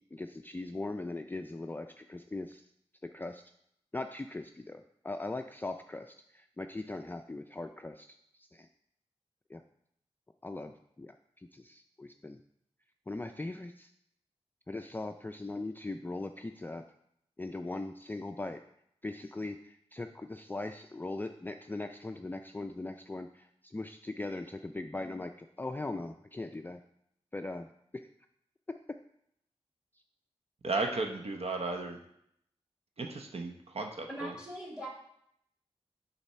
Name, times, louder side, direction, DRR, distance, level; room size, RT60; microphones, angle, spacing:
voice 1, 0.1-2.6 3.1-3.4 3.9-8.7 9.5-9.6 10.4-12.4 13.1-13.9 14.7-16.8 17.4-18.6 19.0-26.8 27.3-27.7 27.9-28.0, left 2 dB, 15° left, 6 dB, 0.3 m, -40 dB
voice 2, 30.6-32.0 33.0-34.3, right 3 dB, 65° right, 3 dB, 0.7 m, -34 dB
voice 3, 34.1-34.9, right 1 dB, 10° right, -2 dB, 2.1 m, -40 dB
7.2 x 4.1 x 5.5 m, 0.73 s
wide cardioid pair, 90°, 11 cm